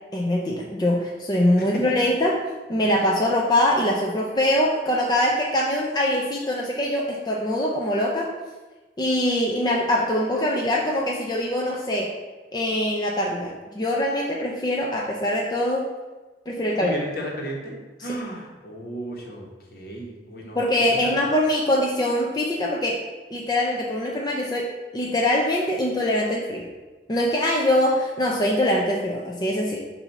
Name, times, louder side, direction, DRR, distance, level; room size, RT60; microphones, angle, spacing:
voice 1, 0.1-2.3 2.7-8.3 9.0-12.1 12.5-15.9 16.5-16.9 18.0-18.1 20.6-23.0 23.3-24.7 24.9-26.7 27.1-29.8, left 1 dB, 25° left, -2 dB, 0.5 m, -23 dB
voice 2, 16.8-17.7 18.0-20.6 20.9-21.1, right 1 dB, 55° left, -1 dB, 1.3 m, -34 dB
6.9 x 2.8 x 5.7 m, 1.2 s
head